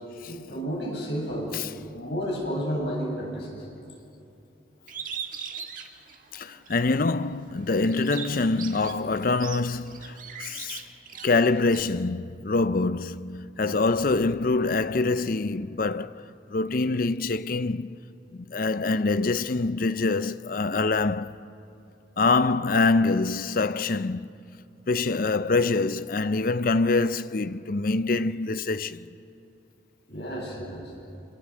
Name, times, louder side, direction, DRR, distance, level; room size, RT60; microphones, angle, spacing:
voice 1, 0.2-1.5 1.9-3.7 30.1-30.9, equal, 65° left, 7.6 m, -31 dB
Bird, 4.9-6.9 7.3-11.8, right 7 dB, 45° right, 1.7 m, -39 dB
voice 2, 6.3-10.8 11.2-18.0 18.3-21.4 22.2-24.6 24.9-29.1, left 3 dB, 45° left, 0.5 m, -25 dB
26.5 x 26.0 x 7.3 m
head